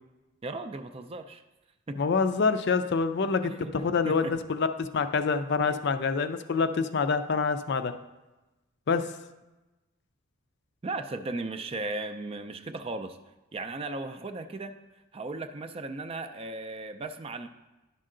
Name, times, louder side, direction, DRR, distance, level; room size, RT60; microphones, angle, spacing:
voice 1, 0.4-1.4 1.9-2.0 3.4-3.7 4.1-4.3 5.7-5.8 10.8-13.2 13.5-14.8 15.1-17.5, right 2 dB, 25° right, 9 dB, 0.4 m, -36 dB
voice 2, 2.0-8.0 8.9-9.2, left 5 dB, 50° left, 10 dB, 0.4 m, -26 dB
10.5 x 5.4 x 3.8 m, 1.1 s
head